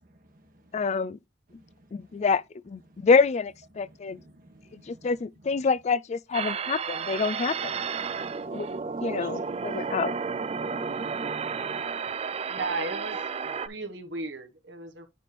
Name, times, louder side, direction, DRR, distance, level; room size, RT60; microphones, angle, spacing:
voice 1, 0.2-0.9 1.5-2.3 2.9-3.1 3.7-5.1 5.4-5.7 8.0-9.4 9.7-9.9 10.5-12.6, right 1 dB, 50° right, 1.6 m, -57 dB
voice 2, 0.7-1.2 1.9-4.2 4.7-7.7 8.5-8.7 9.0-10.1, left 5 dB, 35° left, 0.3 m, -26 dB
sound 1, 6.3-13.7, right 5 dB, 35° right, 0.4 m, -32 dB
voice 3, 12.5-15.1, right 3 dB, 70° right, 1.4 m, -35 dB
9.2 x 3.3 x 4.2 m
head